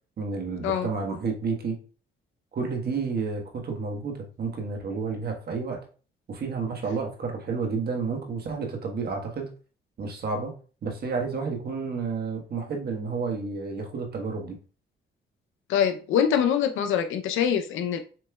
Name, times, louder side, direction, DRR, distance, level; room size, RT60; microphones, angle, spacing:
voice 1, 0.2-1.8 2.5-5.8 6.3-9.5 10.0-10.5 10.8-14.5, right 4 dB, 55° right, 1.5 m, -30 dB
voice 2, 15.7-18.0, left 8 dB, 90° left, 0.7 m, -24 dB
7.4 x 3.1 x 2.3 m
cardioid pair, 90°, 20 cm